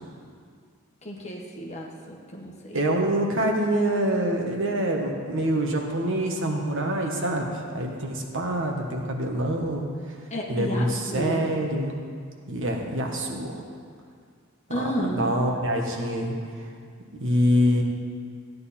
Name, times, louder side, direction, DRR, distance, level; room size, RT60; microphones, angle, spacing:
voice 1, 1.0-2.8 10.3-10.8 11.1-11.4 14.7-15.3, equal, 30° left, -1 dB, 1.4 m, -32 dB
voice 2, 2.7-9.9 10.5-11.9 12.5-13.6 14.7-14.8 15.2-16.3 17.2-17.8, equal, 60° right, 1 dB, 1.4 m, -25 dB
15.0 x 9.5 x 4.3 m, 2.1 s
head